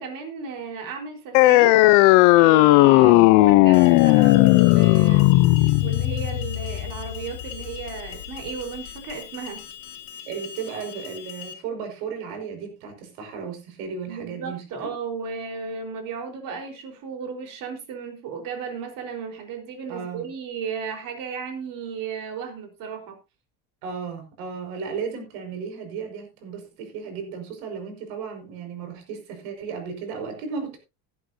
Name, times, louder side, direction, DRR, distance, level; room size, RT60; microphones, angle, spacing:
voice 1, 0.0-1.7 2.4-5.4 5.8-9.6 14.1-23.2, right 5 dB, 55° right, 4.5 m, -34 dB
sound 1, 1.3-8.4, left 20 dB, 90° left, 0.8 m, -16 dB
voice 2, 3.0-3.3 10.3-14.9 19.9-20.3 23.8-30.8, right 6 dB, 90° right, 5.8 m, -34 dB
Alarm, 3.7-11.5, left 9 dB, 55° left, 1.6 m, -41 dB
17.5 x 11.0 x 2.8 m
cardioid pair, 160°, 40 cm